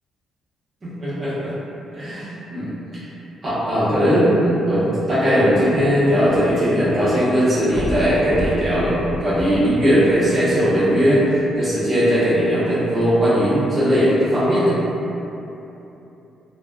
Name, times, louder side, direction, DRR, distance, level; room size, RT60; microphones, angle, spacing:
voice 1, 0.8-1.5 1.9-2.7 3.4-11.2 11.6-14.7, equal, 40° right, -11 dB, 1.0 m, -18 dB
sound 1, 5.4-6.9 7.2-7.3 7.7-10.2 10.9-11.0, left 1 dB, 10° left, 0.4 m, -29 dB
3.2 x 2.2 x 2.4 m, 3.0 s
cardioid pair, 80°, 0 cm